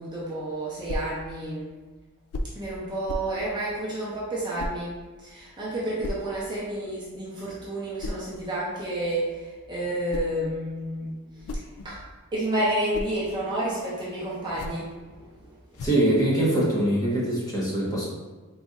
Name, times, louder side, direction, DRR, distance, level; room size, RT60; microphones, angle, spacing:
voice 1, 0.0-1.7 2.5-12.0 12.3-15.3, right 1 dB, 20° right, -7 dB, 0.7 m, -30 dB
sound 1, 0.9-1.2 2.3-2.6 3.1-3.4 4.6-4.8 6.0-6.3 8.0-8.3 9.8-10.4 11.2-12.2 12.6-13.2 14.4-14.9 15.7-16.1, left 1 dB, 75° left, 0.3 m, -35 dB
voice 2, 15.8-18.0, right 1 dB, 15° left, -6 dB, 1.0 m, -23 dB
4.0 x 2.5 x 3.6 m, 1.3 s
head